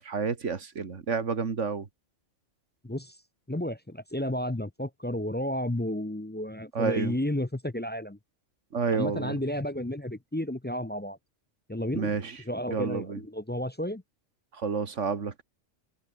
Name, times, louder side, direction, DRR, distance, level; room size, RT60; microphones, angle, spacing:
voice 1, 0.0-1.9 6.7-7.1 8.7-9.4 11.9-12.4 12.7-13.2 14.6-15.4, right 5 dB, 80° right, 2.1 m, -30 dB
voice 2, 2.8-3.2 3.5-8.2 8.9-11.2 11.7-12.2 12.4-14.0, left 1 dB, 10° left, 0.5 m, -32 dB
omnidirectional pair, 1.2 m